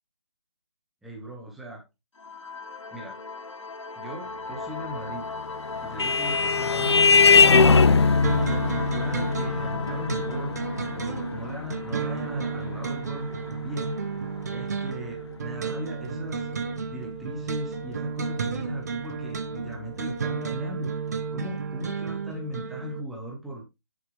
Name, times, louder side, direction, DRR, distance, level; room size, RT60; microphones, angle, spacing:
voice 1, 1.0-1.9 2.9-3.2 4.0-5.3 5.8-10.6 10.9-13.3 13.6-14.0 14.5-16.5 16.9-23.7, equal, ahead, 0 dB, 0.6 m, -38 dB
sound 1, 2.1-12.5, left 4 dB, 75° left, 1.4 m, -37 dB
Vehicle horn car horn honking, 5.4-14.4, left 5 dB, 60° left, 0.7 m, -22 dB
sound 2, 8.2-23.0, right 5 dB, 35° right, 1.1 m, -32 dB
10.5 x 6.0 x 3.1 m, 0.22 s
figure-of-eight pair, 170°, 16 cm